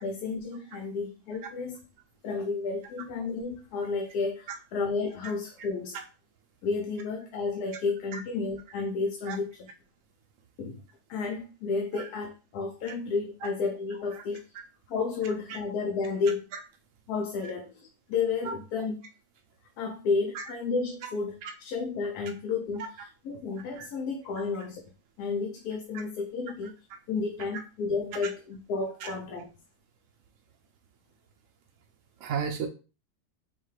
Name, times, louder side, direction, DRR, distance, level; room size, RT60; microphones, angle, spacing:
voice 1, 0.0-1.8 2.2-6.0 6.6-9.7 10.6-10.8 11.1-14.5 14.9-16.4 17.1-19.0 19.8-24.8 25.2-26.7 27.1-29.5, left 4 dB, 85° left, 3 dB, 1.1 m, -32 dB
voice 2, 32.2-32.7, right 7 dB, 65° right, 3 dB, 0.9 m, -33 dB
5.5 x 2.3 x 3.2 m, 0.33 s
omnidirectional pair, 1.6 m